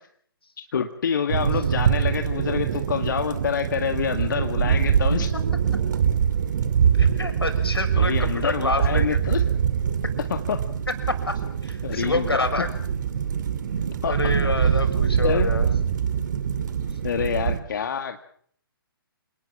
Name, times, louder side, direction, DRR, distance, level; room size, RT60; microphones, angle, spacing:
voice 1, 0.6-5.3 8.0-9.4 10.3-10.6 11.8-12.5 14.0-14.1 15.2-15.5 17.0-18.2, left 7 dB, 55° left, 6 dB, 2.1 m, -27 dB
sound 1, 1.3-17.6, right 8 dB, 50° right, 2.6 m, -24 dB
voice 2, 7.0-9.2 11.1-11.2 11.6-12.7 14.1-15.8, left 2 dB, 85° left, 6 dB, 7.0 m, -28 dB
28.0 x 19.5 x 7.4 m, 0.62 s
figure-of-eight pair, 130°, 12 cm